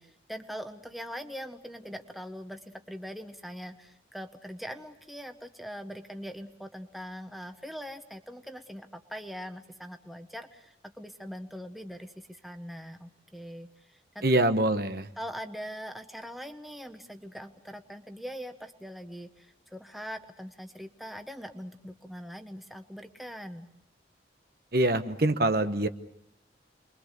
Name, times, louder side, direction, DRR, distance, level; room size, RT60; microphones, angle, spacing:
voice 1, 0.0-14.2 15.2-23.7, equal, ahead, 6 dB, 1.2 m, -42 dB
voice 2, 14.2-15.1 24.7-25.9, right 1 dB, 55° right, 9 dB, 1.1 m, -24 dB
30.0 x 22.5 x 6.7 m, 0.76 s
head